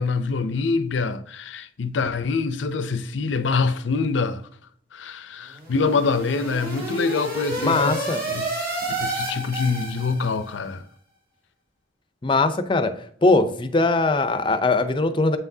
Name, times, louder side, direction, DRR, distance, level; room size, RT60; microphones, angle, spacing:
voice 1, 0.0-4.4 4.9-8.0 8.3-8.7 9.0-10.8, left 4 dB, 75° left, 0.5 m, -25 dB
sound 1, 5.5-10.5, right 2 dB, 50° right, 2.4 m, -30 dB
voice 2, 7.6-8.3 12.2-12.9 13.2-15.4, left 3 dB, 25° left, 0.5 m, -20 dB
7.8 x 5.8 x 2.7 m
head